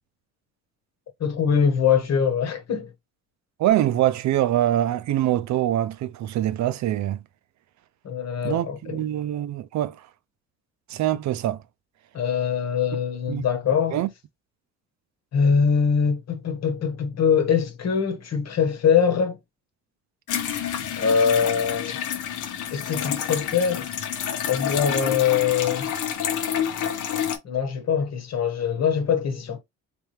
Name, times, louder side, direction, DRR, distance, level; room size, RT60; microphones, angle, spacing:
voice 1, 1.2-2.9 8.0-9.0 12.1-14.0 15.3-19.4 21.0-22.0 22.7-23.9 24.5-25.9 27.4-29.6, left 7 dB, 60° left, 1.3 m, -23 dB
voice 2, 3.6-7.2 8.4-10.0 10.9-11.6 13.3-13.4 13.9-14.1, right 13 dB, 70° right, 0.5 m, -24 dB
sound 1, 20.3-27.4, left 9 dB, 80° left, 0.9 m, -28 dB
3.4 x 3.3 x 3.1 m
cardioid pair, 90°, 30 cm